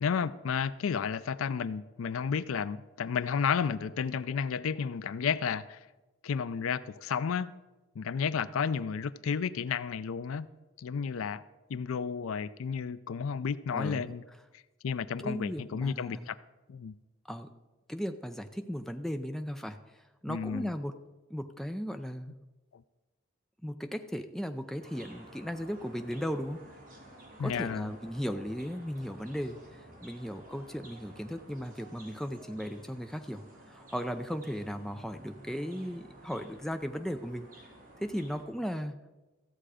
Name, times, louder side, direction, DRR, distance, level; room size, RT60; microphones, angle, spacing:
voice 1, 0.0-5.8 6.2-7.5 8.0-10.5 10.8-11.4 11.7-14.2 14.8-16.4 16.7-16.9 20.3-20.7 22.7-22.8 27.4-27.9, left 6 dB, 80° left, 0.4 m, -32 dB
voice 2, 13.7-14.1 15.2-16.3 17.2-17.5 17.9-21.0 21.3-22.4 23.6-26.6 27.4-37.5 38.0-39.0, equal, ahead, 0.4 m, -37 dB
sound 1, 24.8-38.4, right 1 dB, 40° right, 2.9 m, -53 dB
14.0 x 7.7 x 4.9 m
head